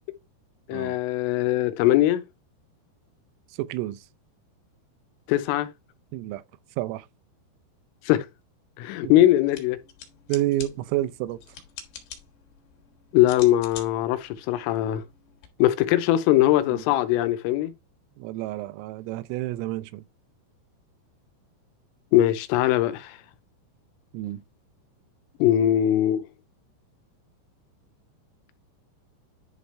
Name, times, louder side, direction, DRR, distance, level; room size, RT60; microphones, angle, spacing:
voice 1, 0.7-2.2 5.3-5.7 8.1-8.3 8.8-9.8 13.1-15.0 15.6-17.7 22.1-23.2 25.4-26.2, left 13 dB, 90° left, 3.3 m, -21 dB
voice 2, 3.6-4.0 6.1-6.4 6.8-7.1 9.0-9.1 10.3-11.4 16.7-16.8 18.2-20.0 24.1-24.4, right 16 dB, 85° right, 3.3 m, -29 dB
sound 1, 9.4-15.5, left 8 dB, 60° left, 3.2 m, -46 dB
11.0 x 5.2 x 3.3 m
omnidirectional pair, 5.8 m